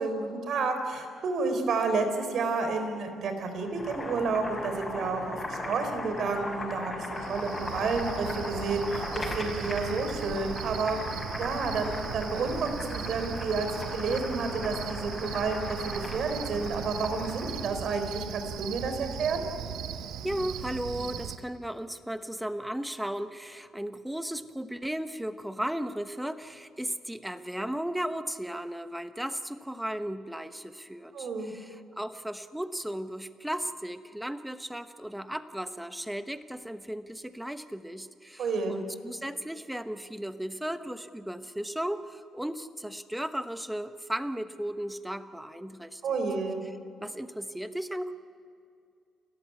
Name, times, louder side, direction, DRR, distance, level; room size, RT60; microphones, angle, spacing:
voice 1, 0.0-11.0 11.4-19.4 31.1-31.5 38.4-38.8 46.0-46.6, right 4 dB, 60° right, 7 dB, 3.9 m, -30 dB
Boiling, 3.6-17.7, left 1 dB, 15° left, 5.9 m, -38 dB
Cricket, 7.1-21.4, right 9 dB, 90° right, 1.2 m, -38 dB
voice 2, 20.2-46.2 47.0-48.1, right 1 dB, 5° right, 10 dB, 1.0 m, -35 dB
29.5 x 14.5 x 9.5 m, 2.5 s
cardioid pair, 130°, 0 cm